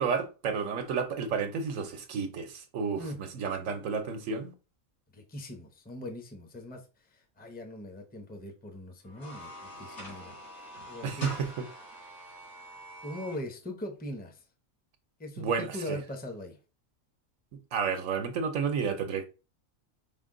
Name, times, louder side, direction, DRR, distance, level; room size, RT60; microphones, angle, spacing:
voice 1, 0.0-4.5 11.0-11.7 15.4-16.0 17.7-19.2, right 6 dB, 75° right, 1.2 m, -31 dB
voice 2, 5.1-6.8 7.4-11.3 13.0-14.4 15.2-16.6, left 1 dB, 10° left, 0.6 m, -41 dB
sound 1, 9.0-13.4, equal, 70° left, 2.9 m, -45 dB
5.6 x 2.2 x 3.7 m
omnidirectional pair, 1.4 m